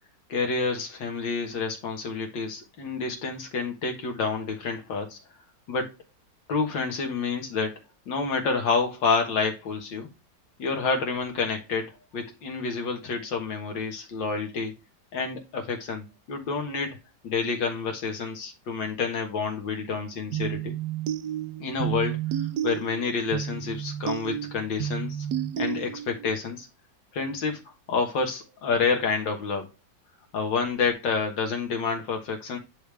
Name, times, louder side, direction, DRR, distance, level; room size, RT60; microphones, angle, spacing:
voice 1, 0.3-5.2 5.7-5.9 6.5-7.7 8.1-10.1 10.6-14.7 15.1-17.0 17.2-20.8 21.6-25.3 25.6-26.7 27.1-27.6 27.9-29.7 30.3-32.6, left 4 dB, 85° left, 2.1 m, -28 dB
sound 1, 20.3-26.3, right 11 dB, 70° right, 1.1 m, -31 dB
10.0 x 3.4 x 3.3 m
omnidirectional pair, 2.0 m